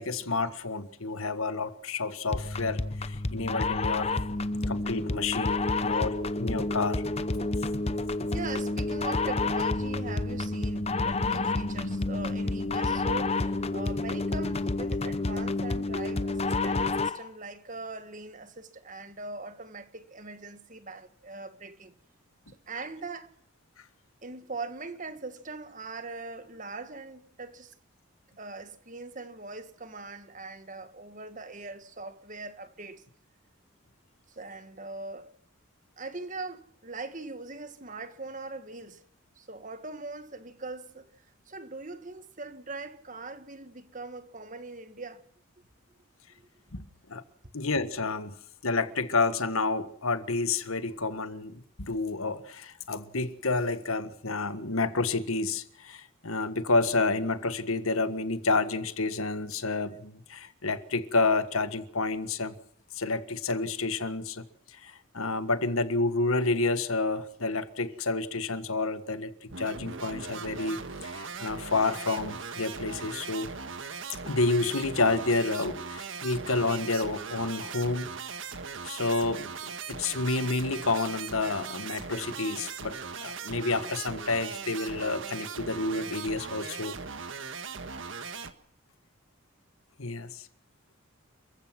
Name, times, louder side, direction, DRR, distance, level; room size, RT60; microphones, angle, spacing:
voice 1, 0.0-4.1 4.7-7.0 46.7-46.8 47.1-47.2 47.5-48.3 48.6-62.5 62.9-64.4 64.8-69.3 69.6-73.5 74.2-78.1 78.8-79.5 79.9-87.0 90.0-90.3, left 3 dB, 80° left, 1.6 m, -29 dB
sound 1, 2.3-17.3, left 2 dB, 30° left, 0.8 m, -29 dB
voice 2, 8.3-21.9 22.7-23.3 24.2-27.7 28.4-33.1 34.3-35.3 36.0-39.0 39.4-41.1 41.5-45.2 46.4-46.5, right 3 dB, 35° right, 1.7 m, -41 dB
sound 2, 69.5-88.5, right 5 dB, 60° right, 1.6 m, -39 dB
29.5 x 15.0 x 6.1 m
head